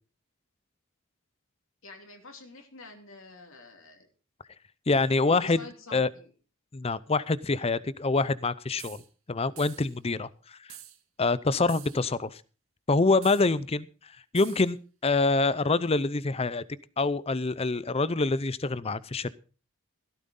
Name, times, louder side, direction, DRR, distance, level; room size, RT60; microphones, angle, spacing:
voice 1, 1.8-4.1 5.3-6.3, left 3 dB, 70° left, 3 dB, 3.0 m, -47 dB
voice 2, 4.9-5.6 5.9-6.1 6.7-9.0 9.3-10.3 11.2-12.4 12.9-13.9 14.3-14.8 15.0-16.6 17.0-19.3, left 3 dB, 30° left, 18 dB, 0.6 m, -25 dB
sound 1, 8.8-9.1 9.6-9.9 10.7-11.0 11.7-12.1 13.2-13.5 14.3-14.7, right 13 dB, 85° right, 1.9 m, -47 dB
16.0 x 13.5 x 3.8 m, 0.36 s
head